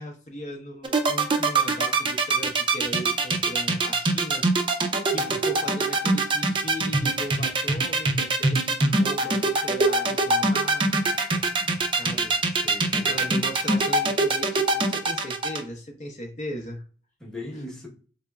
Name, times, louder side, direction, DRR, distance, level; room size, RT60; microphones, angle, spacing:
voice 1, 0.0-4.5 5.1-10.9 12.0-12.4 13.0-16.8 17.5-17.6, equal, 40° left, 0.6 m, -37 dB
sound 1, 0.8-15.6, right 3 dB, 25° right, 0.5 m, -22 dB
voice 2, 5.1-5.4 11.6-11.9 12.5-13.4 17.2-17.9, left 1 dB, 5° left, 0.9 m, -40 dB
3.9 x 3.4 x 2.2 m
head